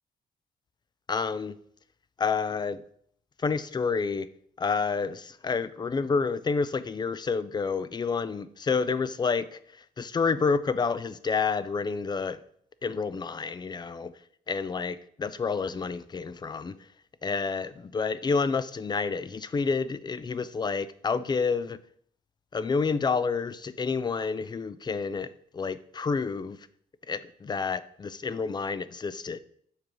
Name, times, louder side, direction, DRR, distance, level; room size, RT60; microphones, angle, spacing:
voice 1, 1.1-1.6 2.2-2.8 3.4-4.3 4.6-9.6 10.0-12.4 12.8-14.1 14.5-16.8 17.2-21.8 22.5-26.6 27.1-29.4, left 5 dB, 25° left, 0.4 m, -29 dB
7.2 x 4.8 x 3.0 m
cardioid pair, 80°, 17 cm